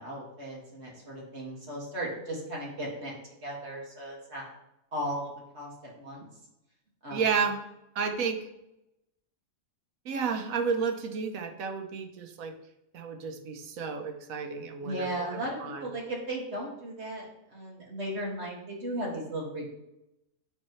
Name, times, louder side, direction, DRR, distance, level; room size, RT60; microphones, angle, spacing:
voice 1, 0.0-3.2 3.4-4.5 4.9-6.2 7.0-7.3 14.8-19.7, right 1 dB, 50° right, -3 dB, 2.2 m, -36 dB
voice 2, 7.1-7.6 7.9-8.4 10.0-12.5 12.9-15.9, right 6 dB, 80° right, 6 dB, 1.2 m, -31 dB
8.6 x 5.4 x 3.1 m, 0.90 s
omnidirectional pair, 1.4 m